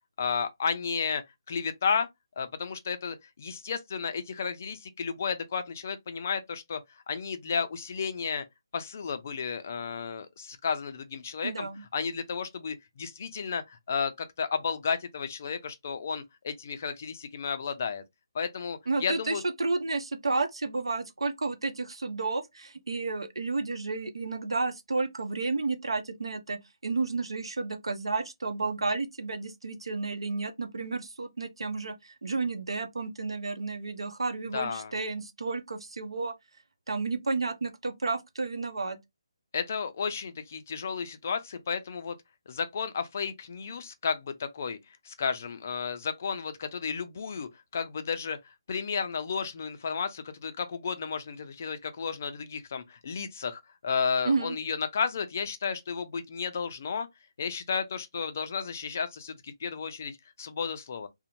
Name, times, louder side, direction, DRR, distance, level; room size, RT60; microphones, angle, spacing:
voice 1, 0.2-1.2 1.5-2.1 2.4-8.4 8.7-18.0 18.3-19.4 34.5-34.9 39.5-42.2 42.5-57.1 57.4-61.1, left 6 dB, 30° left, 0.3 m, -33 dB
voice 2, 11.4-11.8 18.9-36.3 36.9-39.0 54.2-54.6, right 3 dB, 90° right, 0.6 m, -31 dB
2.5 x 2.0 x 2.9 m
hypercardioid pair, 175°, 3 cm